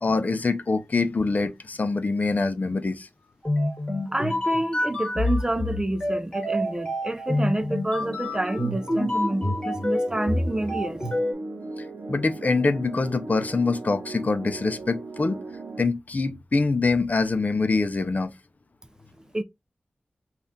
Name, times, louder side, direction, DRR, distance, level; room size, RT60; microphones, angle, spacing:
voice 1, 0.0-3.1 11.8-15.4 15.8-18.3, left 3 dB, 50° left, 0.5 m, -24 dB
sound 1, 3.4-11.3, left 1 dB, 25° left, 1.7 m, -27 dB
voice 2, 4.1-11.0 19.3-19.4, right 1 dB, 20° right, 0.4 m, -28 dB
sound 2, 8.0-15.8, right 2 dB, 65° right, 0.6 m, -38 dB
5.2 x 2.4 x 2.7 m
wide cardioid pair, 75°, 4 cm